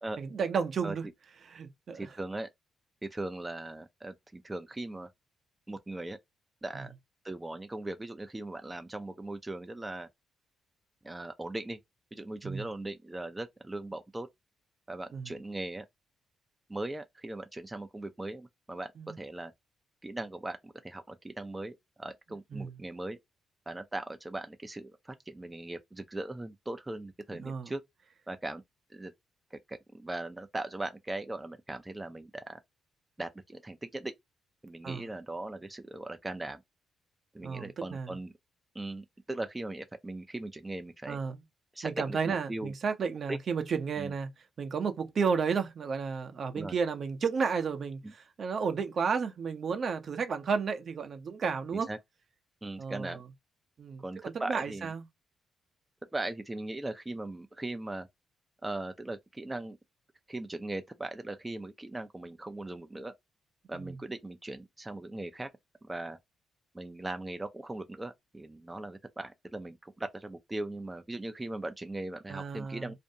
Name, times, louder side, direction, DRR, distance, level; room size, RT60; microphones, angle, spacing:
voice 1, 0.2-1.0 1.4-2.2 6.7-6.8 12.4-12.7 15.1-15.3 19.0-19.2 22.5-22.7 27.3-27.7 34.8-35.0 37.4-38.1 41.0-41.4 41.8-44.3 44.6-51.9 52.8-53.2 53.8-55.0 63.7-64.0 72.3-72.9, right 5 dB, 55° right, 0.7 m, -32 dB
voice 2, 1.9-2.5 3.0-5.1 5.7-6.2 6.6-6.9 7.2-10.1 11.0-11.8 12.1-14.3 14.9-15.9 16.7-19.5 20.0-23.2 23.7-27.8 28.3-28.6 28.9-29.1 29.5-32.6 33.2-34.1 34.6-36.6 37.3-38.3 38.7-41.2 41.7-42.7 43.3-43.4 44.0-44.1 46.5-46.7 48.0-48.1 51.9-52.0 52.6-53.2 54.0-54.9 56.1-58.1 58.6-59.8 60.3-63.1 63.7-65.5 65.8-66.2 66.7-72.9, right 2 dB, 15° right, 0.4 m, -39 dB
2.5 x 2.1 x 2.7 m
supercardioid pair, 65°, 0 cm